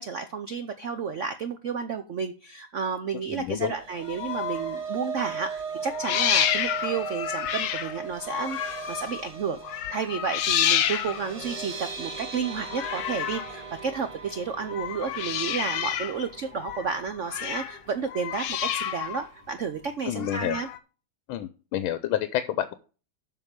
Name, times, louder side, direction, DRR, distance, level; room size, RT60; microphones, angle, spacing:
voice 1, 0.0-20.7, right 5 dB, 70° right, 9 dB, 0.7 m, -32 dB
voice 2, 3.3-3.7 20.1-20.6 21.3-22.7, left 11 dB, 90° left, 12 dB, 1.5 m, -29 dB
sound 1, 3.7-17.9 18.2-18.5 18.8-18.9, right 6 dB, 35° right, 0.6 m, -39 dB
sound 2, 4.0-4.8 5.8-9.3 9.6-11.4 12.7-13.6 14.6-16.2 16.5-17.8 18.1-19.2 20.2-20.8, left 10 dB, 70° left, 1.4 m, -29 dB
7.6 x 6.0 x 6.6 m, 0.37 s
omnidirectional pair, 2.2 m